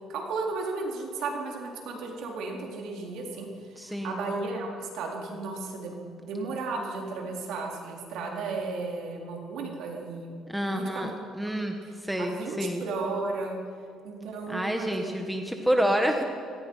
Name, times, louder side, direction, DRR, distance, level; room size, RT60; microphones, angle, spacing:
voice 1, 0.1-5.9 6.2-10.3 10.7-11.2 11.8-13.6 14.0-15.2 15.6-15.8, right 3 dB, 80° right, 0 dB, 4.3 m, -34 dB
voice 2, 3.8-4.3 10.5-11.1 11.4-11.7 12.0-12.8 14.5-16.2, equal, 5° right, 3 dB, 1.4 m, -28 dB
25.0 x 18.5 x 5.7 m, 2.4 s
cardioid pair, 120°, 0 cm